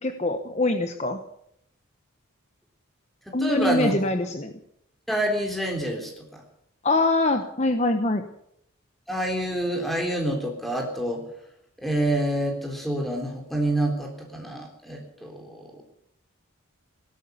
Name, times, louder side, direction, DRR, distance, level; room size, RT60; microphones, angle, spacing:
voice 1, 0.0-1.2 3.3-4.5 6.8-8.2, left 2 dB, 30° left, 7 dB, 1.0 m, -24 dB
voice 2, 3.4-3.9 5.1-6.2 9.1-11.2 11.8-15.8, right 1 dB, ahead, 2 dB, 3.6 m, -27 dB
17.5 x 12.0 x 7.0 m, 0.75 s
head